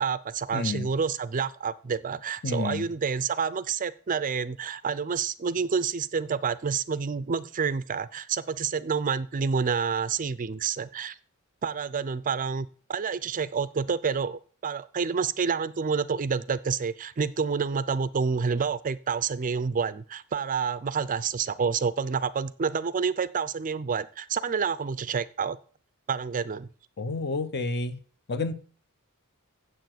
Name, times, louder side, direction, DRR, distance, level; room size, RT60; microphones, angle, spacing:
voice 1, 0.0-11.2 11.6-25.6 26.1-26.7, right 6 dB, 35° right, 0.5 m, -28 dB
voice 2, 0.5-0.9 2.4-2.8 27.0-28.0 28.3-28.5, left 3 dB, 50° left, 0.9 m, -29 dB
7.8 x 6.8 x 7.8 m
head